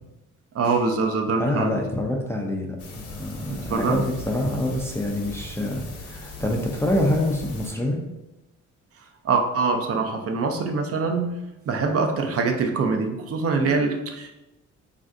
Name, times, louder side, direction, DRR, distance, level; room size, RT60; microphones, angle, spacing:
voice 1, 0.5-1.7 3.5-4.0 9.2-11.4 11.7-14.3, right 4 dB, 50° right, 4 dB, 0.5 m, -24 dB
voice 2, 1.4-8.0, left 1 dB, 10° left, 0 dB, 0.3 m, -26 dB
sound 1, 2.8-7.7, left 2 dB, 50° left, 0.7 m, -39 dB
3.3 x 2.5 x 2.4 m, 0.96 s
cardioid pair, 90°, 30 cm